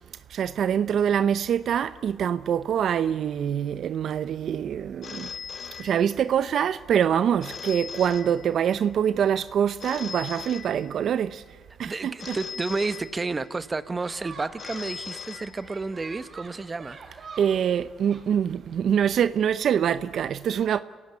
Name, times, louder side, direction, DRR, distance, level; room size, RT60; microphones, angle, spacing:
voice 1, 0.3-5.3 5.6-11.4 11.8-12.4 17.4-20.8, right 8 dB, 65° right, 0.6 m, -25 dB
Telephone, 5.0-6.5 7.4-8.9 9.8-11.3 12.2-13.7 14.6-16.1, left 6 dB, 50° left, 0.7 m, -40 dB
voice 2, 11.8-17.3, right 3 dB, 25° right, 1.2 m, -31 dB
sound 1, 14.0-19.1, right 4 dB, 50° right, 4.7 m, -46 dB
27.0 x 17.0 x 9.7 m
cardioid pair, 90°, 0 cm